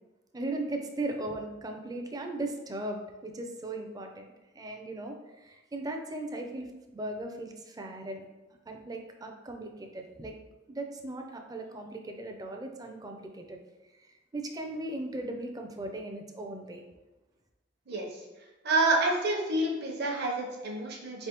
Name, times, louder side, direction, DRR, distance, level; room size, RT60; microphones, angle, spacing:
voice 1, 0.3-5.2 5.4-6.7 6.9-8.2 8.7-10.4 10.7-13.6 14.3-16.8, right 2 dB, 20° right, 4 dB, 0.4 m, -37 dB
voice 2, 18.6-21.3, right 2 dB, 60° right, 0 dB, 0.8 m, -28 dB
4.2 x 3.3 x 2.9 m, 1.1 s
head